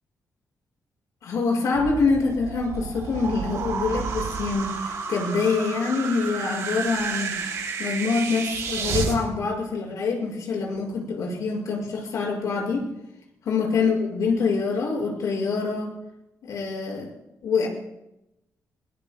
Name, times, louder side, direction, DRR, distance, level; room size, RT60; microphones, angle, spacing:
voice 1, 1.2-7.4 7.8-12.9 13.5-15.9 16.4-17.1 17.4-17.7, left 4 dB, 80° left, -3 dB, 6.0 m, -25 dB
sound 1, 1.7-9.2, right 5 dB, 80° right, 3.0 m, -31 dB
22.5 x 21.5 x 2.3 m, 0.89 s
wide cardioid pair, 160°, 6 cm